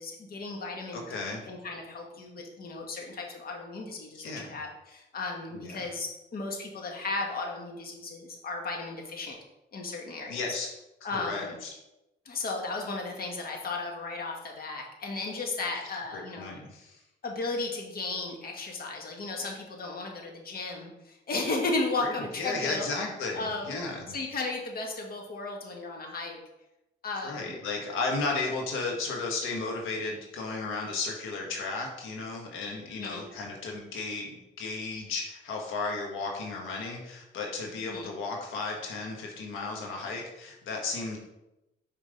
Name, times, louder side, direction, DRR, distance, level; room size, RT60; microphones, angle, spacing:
voice 1, 0.0-9.4 9.7-10.5 11.0-11.6 12.2-16.5 17.2-22.9 23.3-26.4 27.0-27.6 32.9-33.3 37.8-38.1, left 3 dB, 50° left, 1 dB, 1.7 m, -35 dB
voice 2, 0.9-1.4 4.1-4.6 5.5-5.9 10.3-10.7 11.1-11.7 15.6-15.7 16.1-17.0 22.0-22.1 22.4-24.1 27.2-41.2, left 3 dB, 90° left, 0 dB, 1.4 m, -34 dB
5.5 x 5.2 x 5.2 m, 0.93 s
cardioid pair, 90°, 20 cm